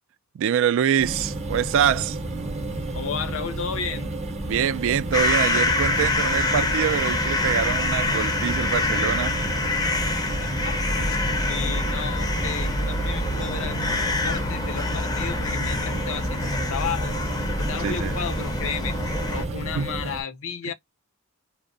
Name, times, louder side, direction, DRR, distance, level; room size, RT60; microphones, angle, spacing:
voice 1, 0.3-2.2 4.5-9.4 17.8-18.1 19.8-19.9, right 9 dB, 60° right, 0.3 m, -24 dB
sound 1, 1.0-20.2, right 2 dB, 30° right, 0.6 m, -31 dB
voice 2, 2.9-4.1 10.2-11.2 11.5-17.1 17.6-19.0 19.3-20.7, left 6 dB, 65° left, 0.5 m, -33 dB
sound 2, 5.1-19.4, left 2 dB, 20° left, 0.5 m, -26 dB
2.6 x 2.0 x 2.5 m
head